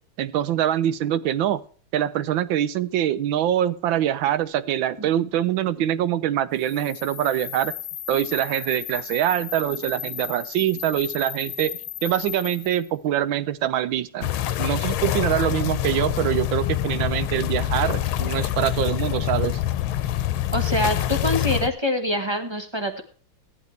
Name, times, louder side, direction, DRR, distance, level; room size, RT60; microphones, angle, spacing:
voice 1, 0.2-1.6 1.9-7.7 8.1-14.3 14.6-19.6, right 11 dB, 75° right, 15 dB, 1.4 m, -24 dB
sound 1, 6.6-12.9, left 13 dB, 70° left, 1.4 m, -36 dB
sound 2, 14.2-21.7, left 13 dB, 85° left, 1.5 m, -25 dB
voice 2, 20.5-23.0, equal, 20° right, 5 dB, 0.9 m, -25 dB
14.5 x 10.5 x 3.3 m, 0.42 s
omnidirectional pair, 2.2 m